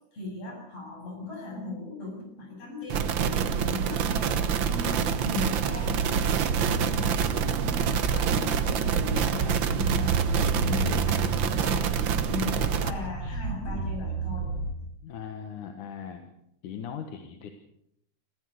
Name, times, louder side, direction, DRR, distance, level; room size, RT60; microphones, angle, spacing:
voice 1, 0.1-6.5 6.7-11.9 12.3-14.5, left 2 dB, 50° left, 0 dB, 8.3 m, -38 dB
sound 1, 2.9-12.9, right 7 dB, 65° right, 1.2 m, -26 dB
sound 2, 5.2-14.7, right 3 dB, 45° right, 5.1 m, -33 dB
voice 2, 15.0-16.3 16.6-17.5, left 7 dB, 80° left, 6 dB, 2.9 m, -39 dB
27.0 x 15.5 x 6.6 m, 0.76 s
omnidirectional pair, 3.6 m